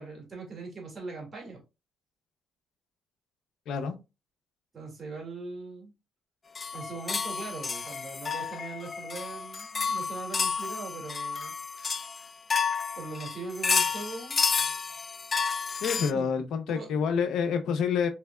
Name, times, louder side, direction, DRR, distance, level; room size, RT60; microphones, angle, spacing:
voice 1, 0.0-1.6 4.7-5.9 6.7-11.5 13.0-14.4 16.1-16.3 16.7-17.0, right 4 dB, 35° right, 2.1 m, -40 dB
Homemade-Chimes-Short-Verb, 6.5-16.1, left 5 dB, 35° left, 0.3 m, -31 dB
voice 2, 15.8-18.1, left 6 dB, 80° left, 0.6 m, -28 dB
4.3 x 3.3 x 2.3 m
cardioid pair, 90°, 0 cm